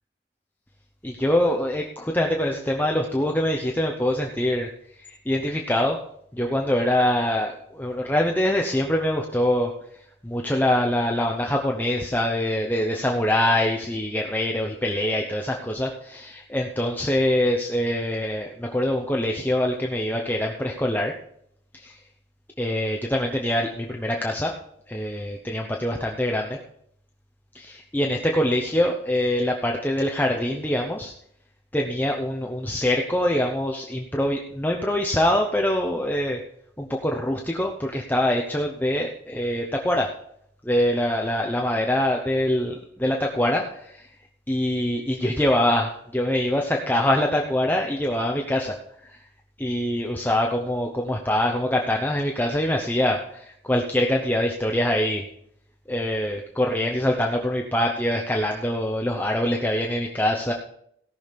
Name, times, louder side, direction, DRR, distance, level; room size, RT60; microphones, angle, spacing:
voice 1, 1.0-4.7 5.0-6.0 6.3-9.7 10.2-21.1 21.7-22.0 22.6-24.5 24.9-26.6 27.5-31.1 31.7-36.4 36.8-40.1 40.6-44.1 44.5-48.8 49.0-49.2 49.6-55.3 55.9-60.5, left 1 dB, 10° left, 1 dB, 0.8 m, -24 dB
17.0 x 6.3 x 5.2 m, 0.70 s
head